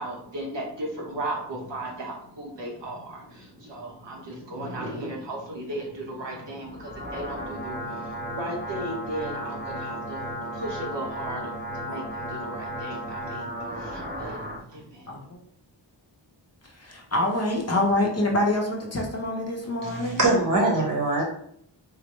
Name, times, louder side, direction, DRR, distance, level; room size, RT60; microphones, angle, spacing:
voice 1, 0.0-15.3, right 1 dB, 65° right, 1.0 m, -36 dB
sound 1, 6.6-14.6, equal, 25° right, 0.6 m, -34 dB
voice 2, 15.1-15.4 16.6-20.2, left 1 dB, 35° left, 0.6 m, -26 dB
voice 3, 19.8-21.2, right 2 dB, 45° right, 1.1 m, -23 dB
3.7 x 2.1 x 3.0 m
wide cardioid pair, 95°, 46 cm